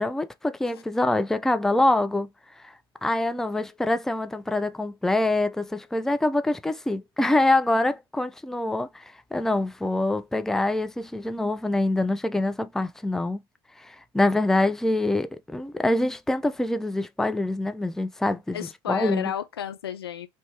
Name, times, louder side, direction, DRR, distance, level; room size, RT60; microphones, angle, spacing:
voice 1, 0.0-2.3 2.6-2.7 3.0-13.4 13.8-19.3, left 2 dB, 5° left, 0.3 m, -25 dB
voice 2, 18.5-20.3, left 10 dB, 85° left, 0.4 m, -32 dB
3.1 x 2.1 x 2.9 m
hypercardioid pair, 65°, 13 cm